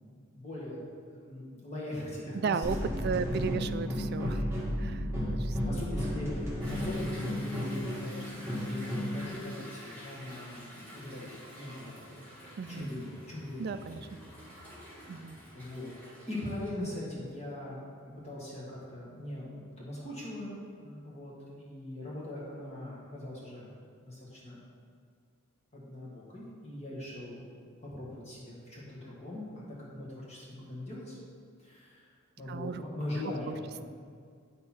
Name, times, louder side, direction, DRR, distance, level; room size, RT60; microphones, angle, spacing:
voice 1, 0.3-0.8 1.1-2.6 3.0-3.5 5.1-5.3 5.7-12.2 12.7-13.6 14.9-15.3 15.5-15.9 16.3-20.5 20.8-23.7 24.0-24.6 25.7-27.4 27.8-31.2 31.6-32.0 32.4-33.8, left 1 dB, 30° left, -6 dB, 1.5 m, -41 dB
voice 2, 2.3-4.5 4.8-5.8 12.6-12.9 13.6-14.2 15.1-15.4 32.5-32.8, right 5 dB, 50° right, 12 dB, 0.3 m, -35 dB
sound 1, 2.6-9.3, equal, 15° right, 1.4 m, -33 dB
Toilet flush / Drip / Trickle dribble, 6.6-16.7, equal, 10° left, 2.0 m, -49 dB
8.8 x 6.6 x 4.3 m, 2.1 s
head